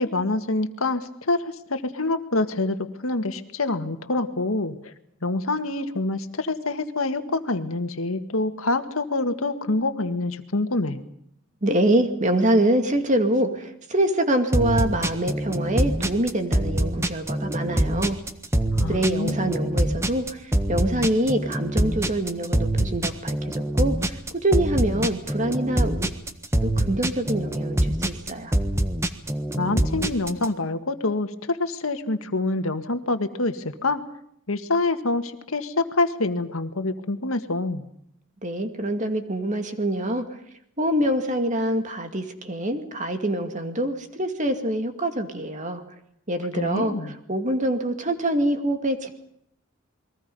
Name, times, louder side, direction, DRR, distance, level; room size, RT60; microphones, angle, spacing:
voice 1, 0.0-4.9 5.2-11.0 18.7-19.7 29.6-34.0 34.5-37.8 46.5-47.1, left 2 dB, 90° left, 8 dB, 1.9 m, -26 dB
voice 2, 11.6-18.2 18.9-20.4 20.7-24.0 24.4-26.2 26.6-28.5 38.4-40.2 40.8-45.8 46.3-46.9 47.3-49.2, right 1 dB, 35° right, 6 dB, 2.4 m, -25 dB
sound 1, 14.5-30.5, right 1 dB, 15° right, 1.4 m, -24 dB
29.0 x 22.0 x 5.5 m, 0.71 s
head